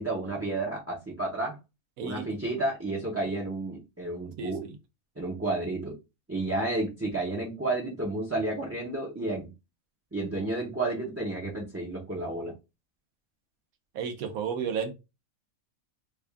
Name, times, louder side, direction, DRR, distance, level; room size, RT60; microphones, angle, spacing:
voice 1, 0.0-1.6 2.0-4.7 5.2-5.9 6.3-9.5 10.1-12.5, right 2 dB, 15° right, 0.6 m, -31 dB
voice 2, 2.0-2.3 4.4-4.7 13.9-14.9, right 7 dB, 80° right, 1.2 m, -32 dB
3.4 x 2.4 x 3.4 m
omnidirectional pair, 1.5 m